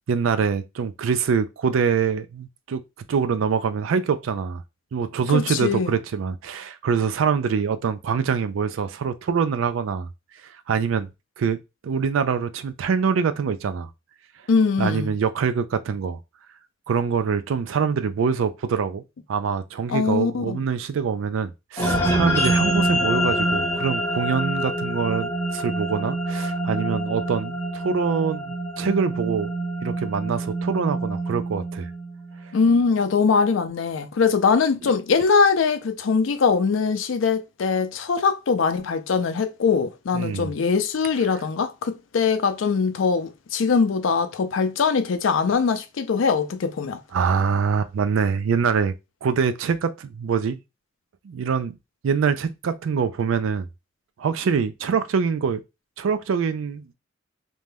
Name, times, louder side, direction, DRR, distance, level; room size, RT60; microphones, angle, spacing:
voice 1, 0.1-2.8 3.1-4.6 4.9-10.1 10.7-11.1 11.4-13.9 14.8-16.2 16.9-19.0 19.3-29.5 29.8-31.9 40.1-40.5 47.1-48.9 49.2-50.6 51.2-51.8 52.0-53.7 54.2-55.6 56.0-56.9, right 6 dB, 80° right, 0.4 m, -24 dB
voice 2, 5.3-5.9 14.5-15.1 19.9-20.6 32.5-47.0, left 5 dB, 75° left, 0.4 m, -22 dB
sound 1, 21.8-32.4, right 1 dB, 10° left, 0.7 m, -26 dB
2.6 x 2.2 x 3.3 m
head